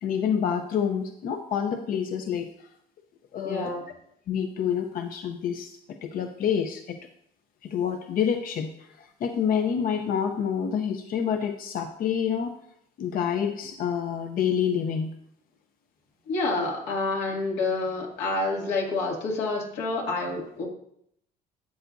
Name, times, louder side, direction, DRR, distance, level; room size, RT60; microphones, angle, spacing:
voice 1, 0.0-2.5 3.3-3.7 4.3-7.0 7.6-12.5 13.0-15.1, left 8 dB, 55° left, 5 dB, 0.7 m, -28 dB
voice 2, 3.4-3.8 16.3-20.6, left 3 dB, 90° left, -1 dB, 2.3 m, -28 dB
12.5 x 8.1 x 2.6 m, 0.72 s
cardioid pair, 110°, 17 cm